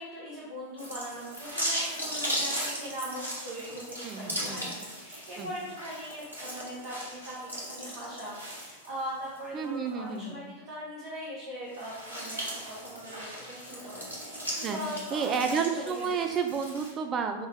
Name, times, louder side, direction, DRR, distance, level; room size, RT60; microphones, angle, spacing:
voice 1, 0.0-16.2, equal, 55° right, -7 dB, 1.1 m, -40 dB
sound 1, 0.8-9.4 9.8-9.9 11.6-16.9, equal, 90° left, 1.1 m, -37 dB
voice 2, 4.0-4.8 5.4-5.5 9.5-10.4 14.6-14.8 15.1-17.5, right 6 dB, 30° right, 5 dB, 0.4 m, -31 dB
5.1 x 2.4 x 3.7 m, 1.1 s
figure-of-eight pair, 90°, 0 cm